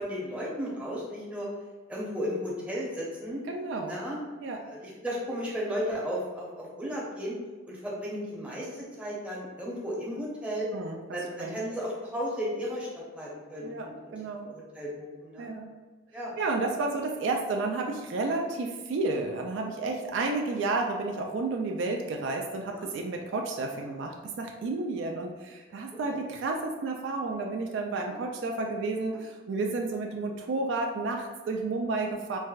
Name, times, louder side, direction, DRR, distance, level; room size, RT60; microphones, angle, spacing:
voice 1, 0.0-1.5 1.9-3.4 3.8-4.2 4.6-7.4 7.7-10.7 11.1-12.9 13.1-14.1 14.4-15.5 16.1-16.4 22.7-22.9 23.7-24.0 26.1-26.2 28.0-28.2, equal, 5° right, -6 dB, 0.7 m, -34 dB
voice 2, 3.5-4.0 4.4-4.6 10.7-11.0 11.4-11.6 13.6-14.5 15.4-15.7 16.4-32.4, right 3 dB, 60° right, 2 dB, 0.3 m, -31 dB
4.6 x 2.1 x 2.3 m, 1.4 s
head